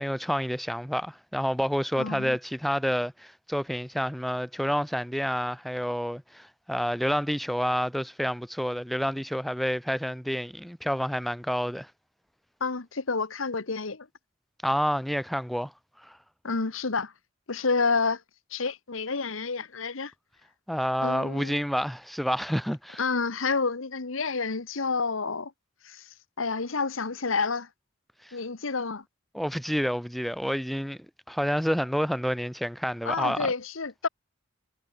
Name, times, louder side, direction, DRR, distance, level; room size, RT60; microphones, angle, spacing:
voice 1, 0.0-11.9 14.6-15.7 16.0-16.2 20.7-23.0 28.2-28.4 29.3-31.0 31.3-33.5, equal, ahead, 0.9 m, -29 dB
voice 2, 2.0-2.4 12.6-14.1 16.4-17.1 17.5-18.2 18.5-20.1 21.0-21.6 23.0-25.5 25.8-26.1 26.4-27.7 28.3-29.0 33.0-34.1, left 4 dB, 85° left, 1.3 m, -29 dB
head